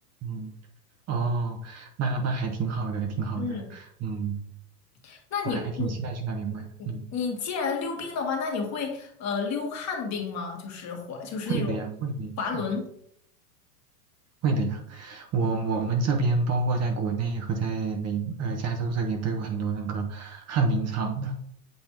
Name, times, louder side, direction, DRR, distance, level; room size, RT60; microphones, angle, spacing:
voice 1, 0.2-0.5 1.1-4.4 5.4-7.0 11.5-12.3 14.4-21.3, right 4 dB, 30° right, 4 dB, 1.0 m, -28 dB
voice 2, 3.4-3.7 5.0-6.0 7.1-11.7 12.4-12.9, left 5 dB, 35° left, 2 dB, 1.8 m, -31 dB
7.9 x 3.3 x 4.5 m, 0.70 s
hypercardioid pair, 105°, 49 cm